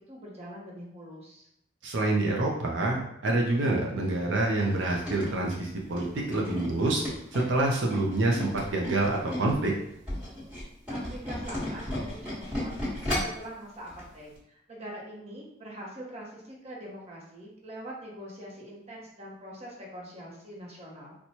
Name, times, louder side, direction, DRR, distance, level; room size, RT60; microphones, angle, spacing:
voice 1, 0.1-1.5 10.9-21.1, equal, 35° right, -3 dB, 0.8 m, -43 dB
voice 2, 1.8-7.0 7.3-9.7, right 2 dB, 70° right, -2 dB, 0.5 m, -27 dB
Tools, 4.6-9.6 9.9-13.4 13.9-14.0 14.3-14.4, left 1 dB, 5° right, 1.3 m, -34 dB
4.3 x 2.1 x 2.8 m, 0.76 s
head